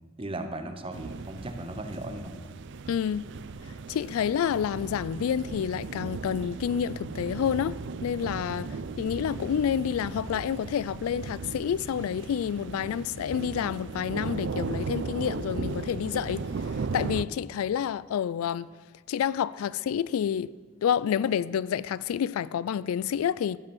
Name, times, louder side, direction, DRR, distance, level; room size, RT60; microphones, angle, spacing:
voice 1, 0.2-2.5 8.7-8.9, right 1 dB, 25° right, 0.9 m, -37 dB
sound 1, 0.9-17.2, right 4 dB, 60° right, 0.5 m, -36 dB
voice 2, 2.9-3.2 3.9-16.5 16.9-18.7 19.1-20.5 20.8-23.6, left 8 dB, 90° left, 0.3 m, -29 dB
15.5 x 5.3 x 7.1 m
head